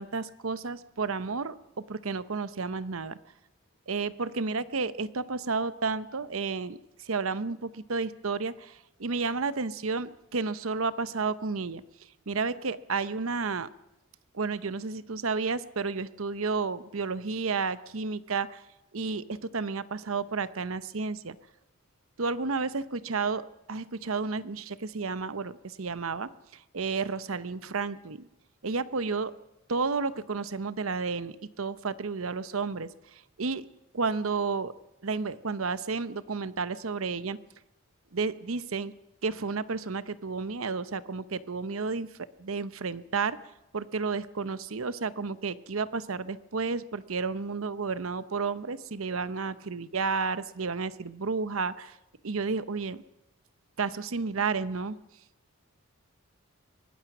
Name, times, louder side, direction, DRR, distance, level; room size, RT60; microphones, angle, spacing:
voice 1, 0.0-1.6 1.9-3.2 3.9-11.8 12.3-13.7 14.3-18.6 18.9-21.4 22.2-26.3 26.7-28.3 28.6-29.3 29.7-32.9 33.4-33.6 33.9-34.7 35.0-37.4 38.1-38.9 39.2-42.1 42.4-43.4 43.7-52.0 52.2-53.0 53.8-55.0, right 4 dB, 85° right, 15 dB, 0.9 m, -31 dB
23.5 x 19.0 x 6.0 m, 0.93 s
head